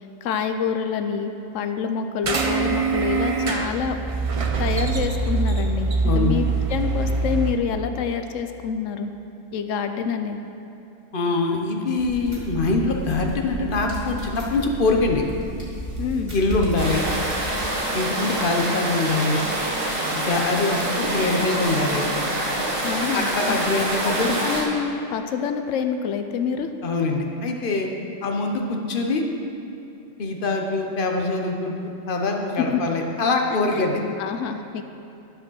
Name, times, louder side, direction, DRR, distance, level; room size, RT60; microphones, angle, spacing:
voice 1, 0.2-4.0 4.6-9.1 9.5-10.4 16.0-16.3 22.8-23.6 24.0-26.7 32.7-32.8 33.8-33.9 34.2-34.8, left 6 dB, 75° left, 7 dB, 0.9 m, -27 dB
sound 1, 2.2-7.5, right 4 dB, 40° right, 0.5 m, -23 dB
voice 2, 6.0-6.4 11.1-15.2 16.3-17.0 17.9-19.4 20.1-22.0 23.1-24.3 26.8-27.9 28.2-29.2 30.2-34.0, left 3 dB, 45° left, 2 dB, 1.0 m, -24 dB
sound 2, 12.0-17.6, equal, 20° right, 2.1 m, -33 dB
sound 3, 16.8-24.6, right 1 dB, 80° right, 1.9 m, -26 dB
11.5 x 5.1 x 6.2 m, 2.8 s
omnidirectional pair, 1.4 m